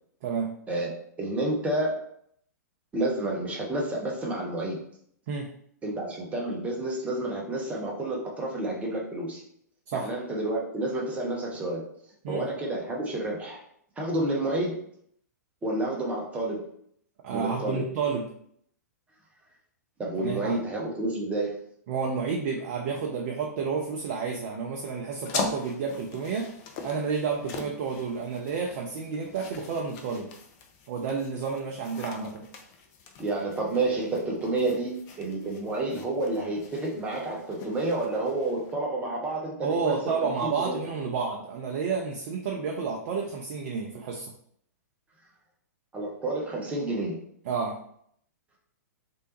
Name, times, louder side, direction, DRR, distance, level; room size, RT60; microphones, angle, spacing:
voice 1, 0.2-0.5 5.3-5.5 9.9-10.1 12.2-12.5 17.2-18.2 20.2-20.6 21.9-26.5 26.8-30.3 30.9-32.5 39.6-44.3 47.5-47.8, right 5 dB, 45° right, 0 dB, 0.5 m, -30 dB
voice 2, 1.2-2.0 2.9-4.8 5.8-9.4 10.0-11.8 12.3-13.6 14.0-14.8 15.6-16.6 17.3-17.8 20.0-21.6 33.2-40.7 45.9-47.2, right 2 dB, 15° right, -2 dB, 0.8 m, -30 dB
sound 1, 25.2-38.7, left 5 dB, 35° left, 0.5 m, -41 dB
3.2 x 2.6 x 3.0 m, 0.67 s
figure-of-eight pair, 110°, 9 cm